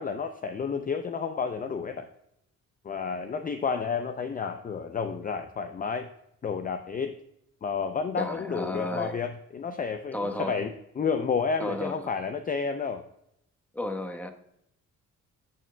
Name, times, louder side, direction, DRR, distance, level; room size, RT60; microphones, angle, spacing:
voice 1, 0.0-2.1 2.8-6.1 6.4-7.2 7.6-13.0, left 5 dB, 30° left, 8 dB, 0.5 m, -31 dB
voice 2, 8.2-9.2 10.1-10.6 11.6-12.1 13.7-14.3, left 1 dB, 5° left, 4 dB, 1.0 m, -33 dB
13.5 x 6.3 x 2.2 m, 0.78 s
cardioid pair, 90°, 30 cm